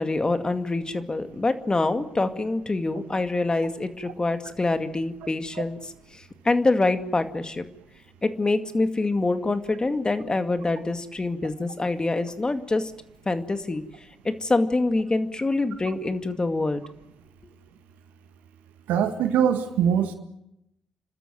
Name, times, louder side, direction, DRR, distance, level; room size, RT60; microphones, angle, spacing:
voice 1, 0.0-7.6 8.2-12.9 13.3-13.8 14.2-16.8, left 2 dB, 30° left, 8 dB, 2.2 m, -25 dB
voice 2, 18.9-20.1, right 8 dB, 80° right, 8 dB, 1.7 m, -22 dB
29.5 x 13.0 x 9.3 m, 0.88 s
hypercardioid pair, 45°, 3 cm